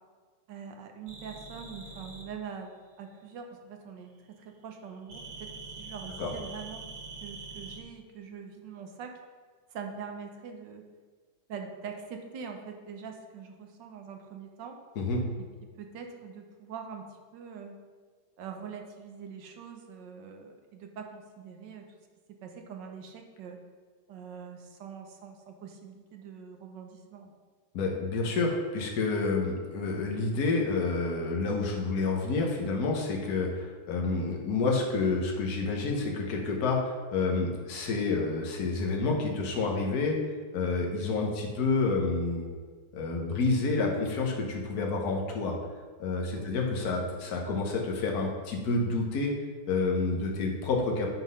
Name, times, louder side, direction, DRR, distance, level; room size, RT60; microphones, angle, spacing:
voice 1, 0.5-2.7 3.0-4.1 4.4-5.5 5.8-6.9 7.2-9.2 9.7-10.8 11.5-14.8 15.4-15.5 15.8-17.1 17.3-17.8 18.4-21.9 22.4-23.6 24.1-27.3 46.3-46.5, right 6 dB, 70° right, 4 dB, 1.4 m, -43 dB
sound 1, 1.1-2.3 5.1-7.8, right 3 dB, 40° right, 0.6 m, -44 dB
voice 2, 27.7-40.2 40.5-42.5 42.9-45.6 46.0-49.3 49.7-51.1, left 3 dB, 55° left, 0 dB, 1.5 m, -29 dB
9.8 x 3.9 x 5.4 m, 1.5 s
omnidirectional pair, 2.1 m